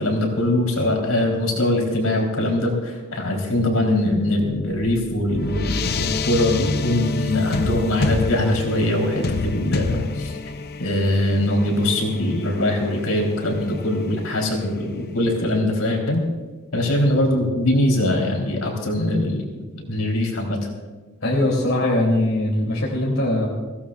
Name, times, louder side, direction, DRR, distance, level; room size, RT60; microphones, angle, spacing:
voice 1, 0.0-10.3 10.8-16.2 16.7-19.4 19.8-20.6, left 1 dB, 85° left, 0 dB, 3.8 m, -22 dB
sound 1, 4.6-15.2, left 3 dB, 45° left, 0.6 m, -28 dB
voice 2, 21.2-23.5, left 1 dB, 65° left, -3 dB, 2.9 m, -21 dB
22.5 x 16.5 x 2.5 m, 1.3 s
head